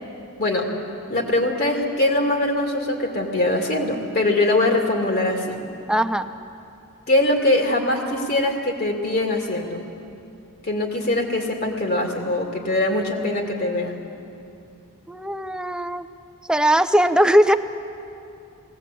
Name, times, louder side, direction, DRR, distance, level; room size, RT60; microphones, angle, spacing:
voice 1, 1.1-5.6 7.1-9.8 10.6-14.0, left 1 dB, 45° left, 1 dB, 2.4 m, -22 dB
voice 2, 5.9-6.3 15.1-16.1 16.5-17.5, equal, 5° right, 10 dB, 0.6 m, -19 dB
20.0 x 17.5 x 8.4 m, 2.7 s
head